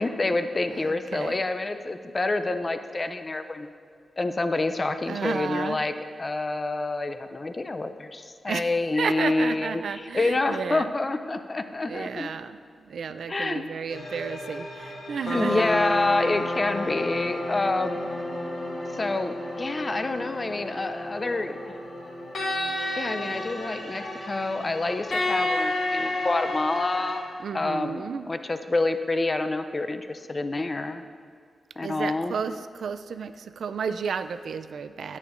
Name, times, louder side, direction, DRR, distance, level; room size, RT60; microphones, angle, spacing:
voice 1, 0.0-3.7 4.2-5.9 6.2-12.3 13.3-13.7 15.3-18.0 18.9-21.6 23.0-27.2 27.5-28.0 28.3-31.0 31.8-32.3, left 2 dB, 25° left, 9 dB, 0.4 m, -27 dB
voice 2, 0.7-1.4 5.1-5.8 8.4-8.7 9.0-10.9 11.9-15.8 27.4-28.3 31.8-35.2, right 6 dB, 70° right, 11 dB, 0.3 m, -32 dB
sound 1, 13.9-27.2, left 1 dB, 70° left, 2.2 m, -31 dB
10.5 x 9.5 x 2.5 m, 2.2 s
wide cardioid pair, 150°, 0 cm